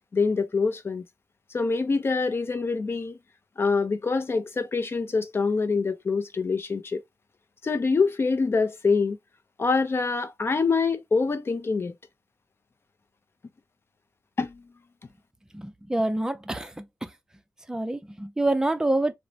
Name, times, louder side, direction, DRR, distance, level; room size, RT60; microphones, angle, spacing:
voice 1, 0.1-1.0 1.5-3.2 3.6-7.0 7.6-9.2 9.6-11.9 14.4-14.6, left 4 dB, 40° left, 0.5 m, -25 dB
voice 2, 15.5-17.1 17.7-19.1, right 2 dB, 10° right, 0.5 m, -27 dB
3.0 x 2.1 x 2.6 m
wide cardioid pair, 105°, 6 cm